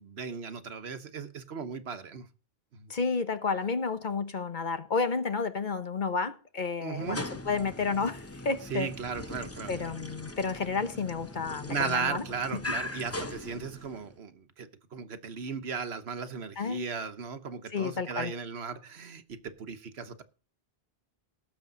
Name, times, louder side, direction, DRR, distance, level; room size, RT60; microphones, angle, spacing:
voice 1, 0.0-2.3 2.7-2.9 6.8-7.2 8.7-9.9 11.7-20.2, right 5 dB, 90° right, 1.4 m, -36 dB
voice 2, 2.9-8.9 9.7-12.2 12.5-12.6 16.6-16.9 17.7-18.3, left 4 dB, 50° left, 1.2 m, -31 dB
sound 1, 6.9-14.1, left 2 dB, 15° left, 0.8 m, -40 dB
18.0 x 7.0 x 3.9 m
omnidirectional pair, 1.1 m